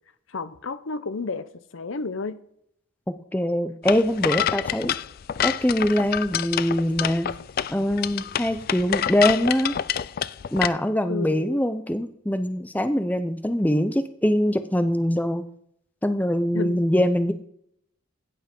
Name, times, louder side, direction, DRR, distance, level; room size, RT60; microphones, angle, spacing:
voice 1, 0.3-2.4 11.1-11.6 16.5-16.8, left 3 dB, 75° left, 0.7 m, -31 dB
voice 2, 3.3-4.9 5.4-7.3 7.7-9.8 10.5-15.4 16.0-17.3, left 1 dB, 10° left, 0.6 m, -23 dB
sound 1, 3.9-10.7, left 10 dB, 45° left, 0.3 m, -27 dB
16.0 x 5.3 x 5.3 m
head